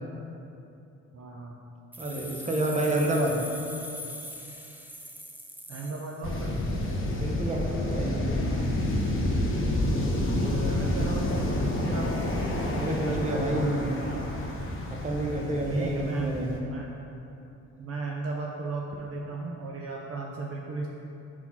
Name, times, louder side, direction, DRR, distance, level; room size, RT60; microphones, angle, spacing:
voice 1, 1.1-1.6 5.7-6.8 10.4-12.1 12.4-14.2 15.7-16.9 17.8-20.9, right 3 dB, 50° right, -1 dB, 0.6 m, -35 dB
sound 1, 1.9-6.7, left 1 dB, 5° right, 0.6 m, -42 dB
voice 2, 2.0-3.5 7.2-8.3 12.7-13.9 15.0-16.5, right 1 dB, 25° right, 0 dB, 0.9 m, -28 dB
sound 2, 6.2-16.6, left 1 dB, 45° left, 1.0 m, -29 dB
4.4 x 4.3 x 5.6 m, 2.8 s
cardioid pair, 90°, 30 cm